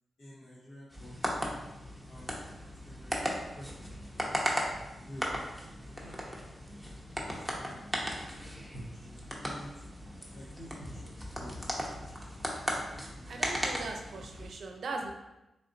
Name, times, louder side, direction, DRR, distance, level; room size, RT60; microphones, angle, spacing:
voice 1, 0.2-1.4 2.1-3.2 3.5-4.4 5.0-6.3 7.2-9.8 10.3-12.6 12.9-13.8, equal, 80° left, -10 dB, 1.1 m, -50 dB
sound 1, 0.9-14.5, equal, ahead, 0.8 m, -37 dB
voice 2, 13.3-15.1, right 3 dB, 75° right, 3 dB, 0.5 m, -39 dB
3.4 x 2.5 x 3.8 m, 0.95 s
cardioid pair, 70°, 0 cm